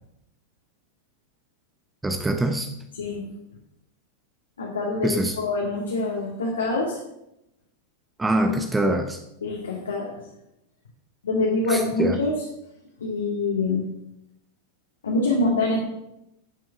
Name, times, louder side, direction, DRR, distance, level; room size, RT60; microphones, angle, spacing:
voice 1, 2.0-2.7 5.0-5.4 8.2-9.2 11.7-12.2, right 1 dB, 10° right, 5 dB, 0.9 m, -24 dB
voice 2, 3.0-3.3 4.6-7.0 9.4-10.3 11.2-12.4 13.0-13.9 15.0-15.9, left 2 dB, 70° left, -2 dB, 2.0 m, -25 dB
10.5 x 7.5 x 5.8 m, 0.83 s
figure-of-eight pair, 90°, 0 cm